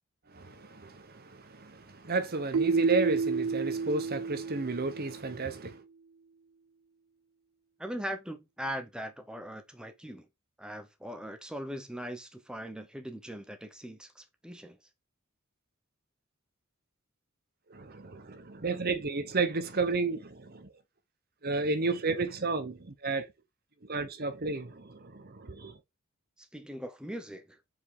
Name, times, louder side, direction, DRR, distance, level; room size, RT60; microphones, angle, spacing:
voice 1, 0.3-5.8 17.7-20.7 21.4-23.3 23.8-25.8, right 3 dB, 45° right, 1.0 m, -32 dB
Keyboard (musical), 2.5-5.4, right 5 dB, 80° right, 0.4 m, -30 dB
voice 2, 7.8-10.3 10.6-14.8 26.4-27.6, equal, 5° right, 0.9 m, -40 dB
5.3 x 4.9 x 4.0 m
head